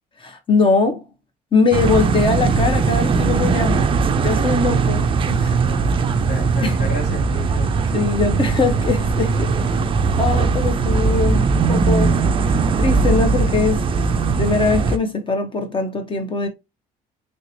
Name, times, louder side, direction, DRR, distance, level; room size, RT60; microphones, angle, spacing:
voice 1, 0.2-1.0 1.5-3.9 4.2-5.5 6.6-6.8 7.9-9.5 10.2-12.2 12.8-13.8 14.3-16.5, left 4 dB, 30° left, 0.7 m, -21 dB
sound 1, 1.7-15.0, right 4 dB, 30° right, 0.4 m, -19 dB
voice 2, 5.6-7.8, left 2 dB, 85° left, 1.9 m, -32 dB
3.2 x 2.8 x 2.6 m
cardioid pair, 110°, 17 cm